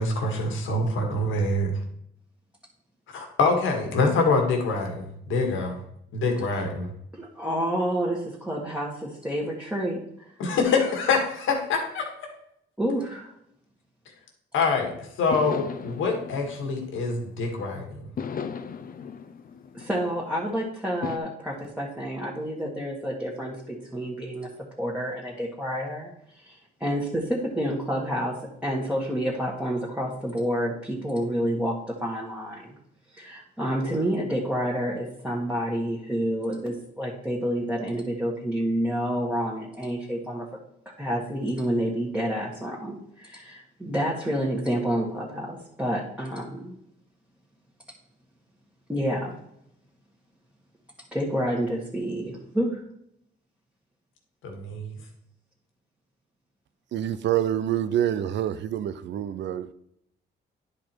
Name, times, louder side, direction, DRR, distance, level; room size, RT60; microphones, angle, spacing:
voice 1, 0.0-1.7 3.1-5.8 6.1-6.9 10.4-12.1 14.5-14.9 15.2-18.0 54.4-55.0, left 3 dB, 80° left, 1.9 m, -25 dB
voice 2, 7.1-10.0 12.8-13.3 19.7-24.5 24.8-32.7 33.1-40.5 41.0-46.8 48.9-49.4 51.1-52.8, equal, 5° right, 1.8 m, -29 dB
sound 1, 15.3-17.6 18.2-20.4 21.0-21.2, left 6 dB, 45° left, 0.7 m, -36 dB
voice 3, 56.9-59.7, right 11 dB, 65° right, 0.6 m, -26 dB
10.5 x 4.9 x 4.5 m
cardioid pair, 90°, 20 cm